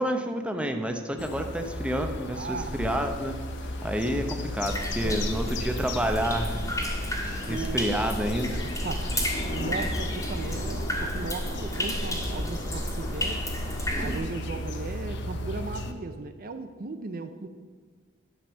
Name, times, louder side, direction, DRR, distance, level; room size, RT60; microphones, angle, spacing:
voice 1, 0.0-3.4 3.8-6.6 7.5-8.7, equal, 5° right, 4 dB, 0.8 m, -29 dB
sound 1, 1.2-15.9, left 1 dB, 60° left, 0.9 m, -36 dB
voice 2, 2.3-2.9 5.0-5.4 7.5-7.9 8.8-13.4 14.0-17.5, right 3 dB, 45° right, 8 dB, 0.6 m, -37 dB
sound 2, 2.6-15.0, left 1 dB, 45° left, 1.6 m, -43 dB
sound 3, 4.6-14.2, equal, 15° left, 1.6 m, -31 dB
10.5 x 5.3 x 7.1 m, 1.5 s
head